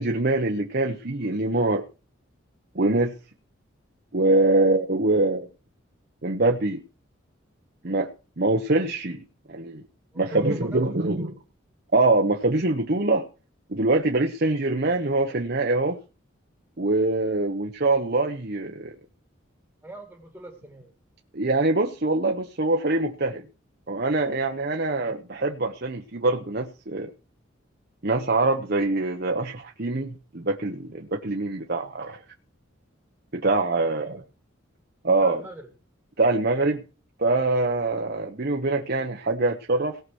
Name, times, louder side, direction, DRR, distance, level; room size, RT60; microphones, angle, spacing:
voice 1, 0.0-1.8 2.7-3.1 4.1-5.5 6.2-6.8 7.8-8.1 8.4-9.8 10.2-11.3 11.9-13.2 13.7-16.0 16.8-18.9 21.3-23.4 23.9-27.1 28.0-32.2 33.3-34.2 35.0-35.4 36.2-36.8 37.2-40.0, right 2 dB, 50° right, 3 dB, 1.0 m, -24 dB
voice 2, 10.1-10.8 11.2-11.4 19.8-20.9 33.8-34.1 35.2-35.7, right 1 dB, 10° right, 4 dB, 1.7 m, -43 dB
18.0 x 6.0 x 6.3 m, 0.34 s
head